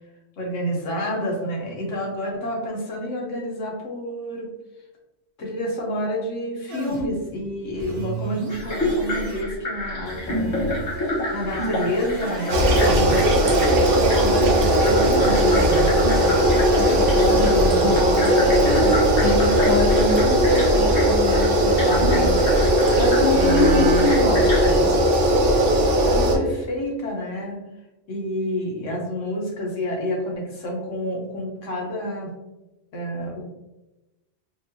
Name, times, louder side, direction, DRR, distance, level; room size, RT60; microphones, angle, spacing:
voice 1, 0.4-4.5 5.4-10.9 11.3-13.6 13.8-14.5 14.8-16.0 17.3-18.0 26.0-27.6 28.1-32.3 32.9-33.4, equal, 90° left, -1 dB, 1.4 m, -29 dB
sound 1, 6.7-19.6, right 3 dB, 55° right, 0.8 m, -34 dB
sound 2, 8.5-24.7, left 1 dB, 65° left, 1.6 m, -29 dB
sound 3, 12.5-26.4, right 1 dB, 75° right, 1.0 m, -18 dB
voice 2, 16.8-17.5 17.8-22.5 22.9-25.0, left 3 dB, 40° left, -2 dB, 0.8 m, -26 dB
4.5 x 2.6 x 2.8 m, 1.0 s
omnidirectional pair, 1.2 m